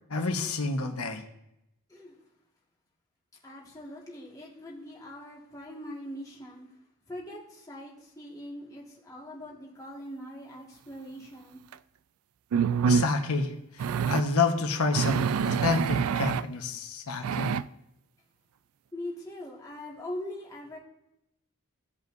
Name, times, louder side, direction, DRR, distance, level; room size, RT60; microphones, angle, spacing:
voice 1, 0.1-1.2 12.8-17.5, left 3 dB, 85° left, 5 dB, 1.2 m, -29 dB
voice 2, 3.4-6.7 7.1-11.6 18.9-20.8, left 1 dB, 15° left, -5 dB, 1.7 m, -42 dB
sound 1, 11.7-11.8 12.5-13.1 13.8-14.2 14.9-16.4 17.2-17.6, right 6 dB, 75° right, 0.3 m, -26 dB
16.0 x 5.4 x 2.6 m, 0.84 s
head